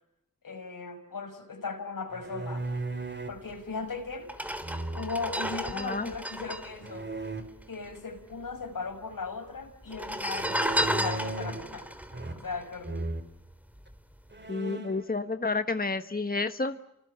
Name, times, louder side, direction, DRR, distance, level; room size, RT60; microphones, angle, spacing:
voice 1, 0.4-2.7 3.3-4.3 4.9-7.1 7.7-11.9 12.4-13.2, left 4 dB, 70° left, 9 dB, 5.6 m, -37 dB
sound 1, 2.1-3.4 4.6-5.3 6.8-7.4 10.3-11.7 12.1-12.6 12.8-13.3 13.9-14.0 14.3-15.1, right 2 dB, 30° right, 3.8 m, -36 dB
sound 2, 3.6-3.7 4.2-7.9 8.2-8.3 8.4-9.1 9.8-13.3 13.8-14.0, equal, 5° right, 3.2 m, -33 dB
voice 2, 5.8-6.1 14.5-16.8, left 3 dB, 25° left, 9 dB, 1.4 m, -30 dB
29.0 x 25.0 x 7.9 m, 0.83 s
cardioid pair, 40°, 34 cm